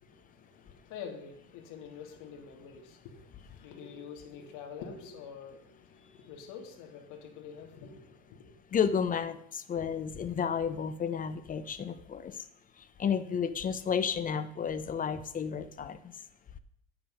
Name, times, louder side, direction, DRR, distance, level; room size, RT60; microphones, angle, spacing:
voice 1, 0.0-8.6, left 6 dB, 55° left, 2.9 m, -47 dB
voice 2, 8.7-12.5 12.8-16.1, left 7 dB, 25° left, 0.7 m, -32 dB
9.3 x 8.8 x 5.5 m
supercardioid pair, 130°, 36 cm